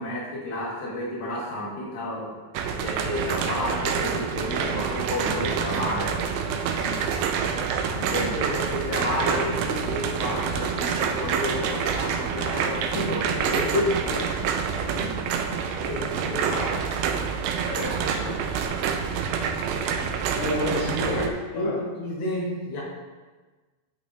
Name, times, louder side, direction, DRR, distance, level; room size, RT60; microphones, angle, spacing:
voice 1, 0.0-2.4 2.8-6.3 7.9-14.3 15.8-16.9 21.0-21.3 21.5-22.8, left 1 dB, 75° left, -5 dB, 3.4 m, -30 dB
sound 1, 2.6-21.3, right 6 dB, 85° right, 2.4 m, -27 dB
voice 2, 6.7-7.0 14.9-15.1 17.7-18.5 20.3-21.2 21.5-21.8, left 1 dB, 50° left, -5 dB, 2.0 m, -31 dB
11.0 x 5.9 x 2.6 m, 1.3 s
omnidirectional pair, 4.2 m